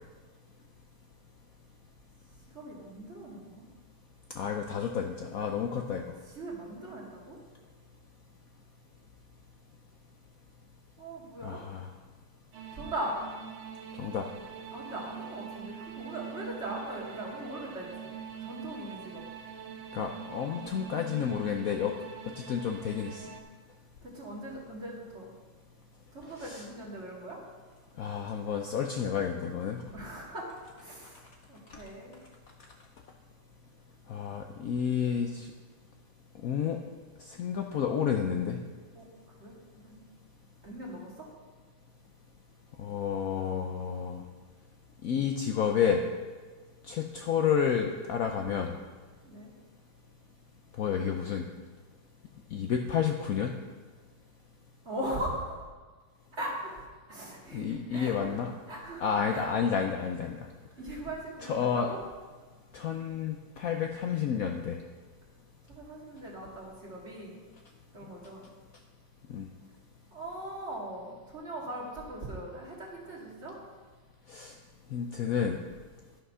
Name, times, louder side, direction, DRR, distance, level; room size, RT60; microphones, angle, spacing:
voice 1, 2.5-3.6 6.4-7.4 11.0-11.6 12.7-13.2 14.7-18.1 18.4-19.2 24.0-25.3 26.1-27.4 29.9-30.5 30.8-31.2 31.5-32.2 38.9-39.1 39.4-40.0 40.6-41.3 49.2-49.5 54.9-55.7 56.3-56.8 57.1-58.4 58.7-59.5 60.8-62.0 65.7-67.4 67.9-68.5 70.1-73.6, right 1 dB, 35° right, -3 dB, 2.1 m, -40 dB
voice 2, 4.4-6.0 11.4-11.9 14.0-14.3 19.9-21.9 22.4-23.3 26.4-26.6 28.0-29.8 34.1-35.5 36.4-36.8 37.2-38.6 42.8-44.2 45.0-46.0 46.9-48.7 50.8-51.4 52.5-53.5 57.5-58.5 59.0-60.4 61.4-61.9 62.7-64.8 69.3-69.5 74.3-74.5 74.9-75.6, left 7 dB, 85° left, 3 dB, 0.7 m, -30 dB
sound 1, 12.5-23.4, right 8 dB, 90° right, 1.7 m, -44 dB
11.0 x 5.9 x 5.5 m, 1.4 s
omnidirectional pair, 2.2 m